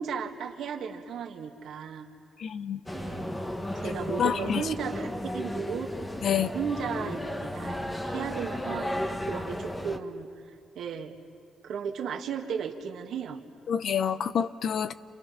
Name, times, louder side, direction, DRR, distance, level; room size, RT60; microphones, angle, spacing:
voice 1, 0.0-2.1 2.9-3.4 3.7-5.9 6.3-11.2 11.6-13.4, right 6 dB, 70° right, 4 dB, 2.0 m, -35 dB
voice 2, 2.4-2.8 4.2-4.6 6.2-6.5 13.7-14.9, left 8 dB, 60° left, 13 dB, 0.8 m, -27 dB
sound 1, 2.9-10.0, left 1 dB, 15° left, 1.4 m, -34 dB
30.0 x 29.0 x 5.8 m, 2.2 s
cardioid pair, 90°, 0 cm